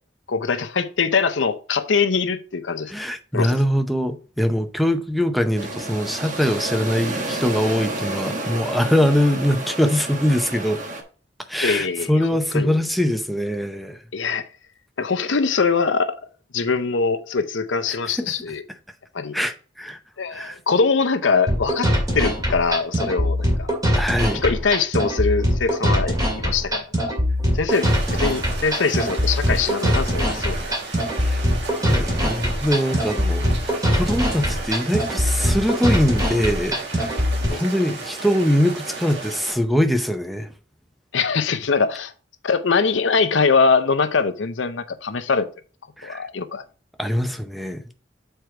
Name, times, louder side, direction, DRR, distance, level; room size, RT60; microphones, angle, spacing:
voice 1, 0.3-2.9 3.3-3.6 11.6-12.1 12.5-12.8 14.1-14.5 15.0-16.2 16.5-18.6 19.1-19.3 20.2-21.9 22.1-23.7 24.4-27.1 27.5-30.7 37.5-37.6 41.1-42.1 42.4-45.5 46.0-46.6, left 5 dB, 90° left, 0.7 m, -22 dB
voice 2, 2.9-10.8 11.5-14.0 18.1-18.3 19.3-20.0 20.3-20.6 23.9-24.4 31.2-31.5 31.9-37.2 37.5-40.5 46.0-46.2 47.0-47.8, equal, ahead, 0.6 m, -22 dB
sound 1, 5.6-11.0, right 2 dB, 45° right, 1.3 m, -30 dB
sound 2, 21.5-37.5, equal, 20° right, 2.3 m, -22 dB
sound 3, 27.7-39.5, right 4 dB, 70° right, 1.9 m, -34 dB
6.7 x 4.5 x 4.6 m
head